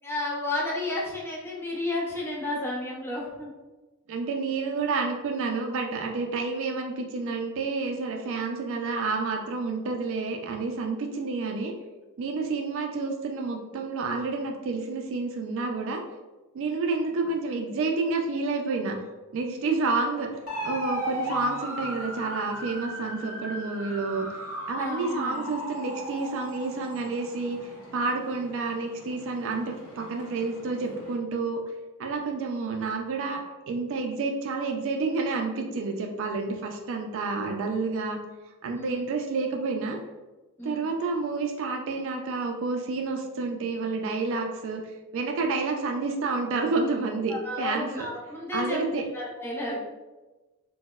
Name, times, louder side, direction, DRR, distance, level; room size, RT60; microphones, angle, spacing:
voice 1, 0.0-3.5 24.8-25.5 38.7-39.1 40.6-40.8 47.3-48.8 49.1-49.8, left 2 dB, 10° left, -6 dB, 0.6 m, -32 dB
voice 2, 4.1-11.7 12.2-16.0 16.5-19.0 19.3-20.3 20.6-24.3 24.7-31.6 32.0-33.4 33.7-38.2 38.6-40.0 40.6-44.8 45.1-48.1 48.5-49.0, right 3 dB, 60° right, 3 dB, 0.3 m, -29 dB
sound 1, 20.5-31.2, equal, 85° left, 1.0 m, -37 dB
3.9 x 2.0 x 2.3 m, 1.1 s
head